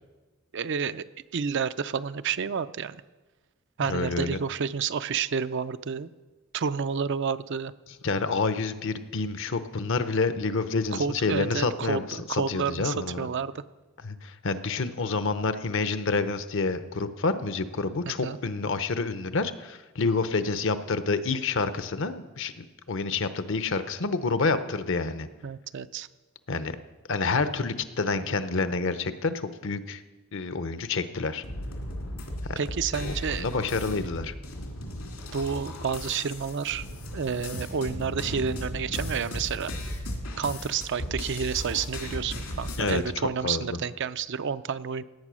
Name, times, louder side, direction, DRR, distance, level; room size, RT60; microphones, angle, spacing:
voice 1, 0.5-1.0 1.3-3.0 3.8-6.1 6.5-7.7 10.9-13.6 18.2-18.4 25.4-26.1 32.6-33.4 35.3-36.9 37.1-39.7 40.4-45.0, right 6 dB, 55° right, 13 dB, 0.5 m, -30 dB
voice 2, 3.9-4.4 8.0-13.3 14.0-25.3 26.5-26.8 27.1-30.0 30.3-31.4 32.4-32.6 33.0-34.3 42.8-43.8, left 3 dB, 60° left, 12 dB, 0.8 m, -28 dB
sound 1, 31.4-43.0, left 1 dB, 80° left, 2.9 m, -36 dB
17.0 x 8.9 x 6.3 m, 1.2 s
head